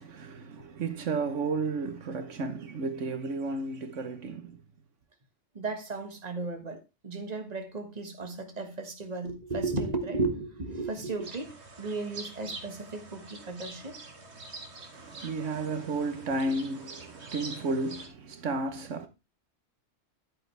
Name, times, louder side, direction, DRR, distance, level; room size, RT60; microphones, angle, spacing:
voice 1, 0.0-4.6 14.9-19.1, right 3 dB, 80° right, 1.4 m, -33 dB
voice 2, 5.5-6.8 7.0-14.0, right 3 dB, 35° right, 1.7 m, -34 dB
sound 1, 11.2-18.1, right 3 dB, 60° right, 2.0 m, -45 dB
10.0 x 9.0 x 3.3 m
omnidirectional pair, 1.3 m